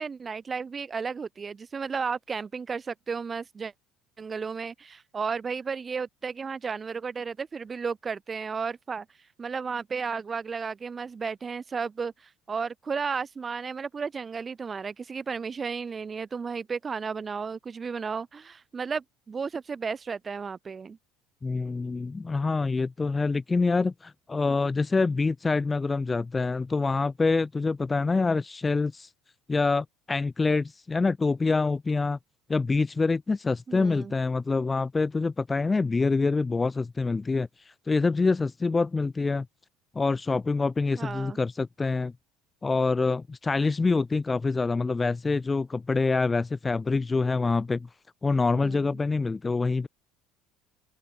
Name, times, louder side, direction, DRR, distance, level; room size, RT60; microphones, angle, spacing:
voice 1, 0.0-3.7 4.2-9.0 9.4-21.0 33.7-34.1 41.0-41.4 48.5-48.8, right 5 dB, 30° right, 1.8 m, -33 dB
voice 2, 21.4-29.1 29.5-32.2 32.5-39.5 39.9-42.1 42.6-47.9 48.2-49.9, left 3 dB, 20° left, 0.3 m, -26 dB
open air
hypercardioid pair, 70°, 0 cm